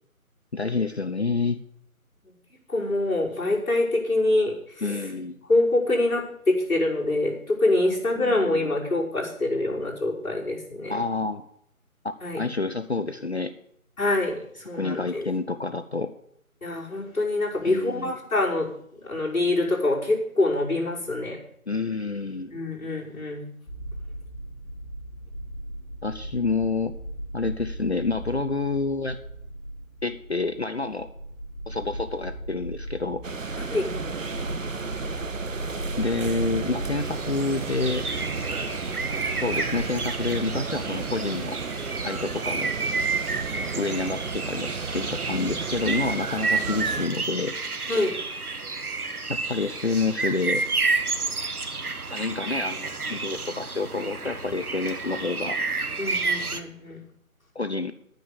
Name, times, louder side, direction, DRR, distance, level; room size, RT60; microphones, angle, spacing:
voice 1, 0.5-1.6 4.8-5.4 8.2-8.7 10.9-11.4 12.0-13.5 14.7-16.1 17.6-18.1 21.7-22.5 26.0-27.0 27.3-29.2 30.0-31.1 31.7-33.2 36.0-38.0 39.4-41.6 42.0-42.7 43.7-47.5 49.3-50.6 52.1-55.6 57.5-57.9, left 3 dB, 50° left, 10 dB, 0.7 m, -28 dB
voice 2, 2.7-5.1 5.5-11.0 12.2-12.4 14.0-15.2 16.6-18.7 19.0-21.4 22.5-23.5 33.6-33.9 47.9-48.2 56.0-57.0, left 2 dB, 65° left, -5 dB, 5.7 m, -25 dB
sound 1, 23.7-40.6, right 1 dB, 25° left, 3.6 m, -37 dB
sound 2, 33.2-47.1, right 4 dB, 60° right, 0.9 m, -33 dB
sound 3, 37.0-56.6, right 4 dB, 80° right, 1.5 m, -30 dB
11.0 x 9.2 x 6.9 m, 0.71 s
figure-of-eight pair, 170°, 43 cm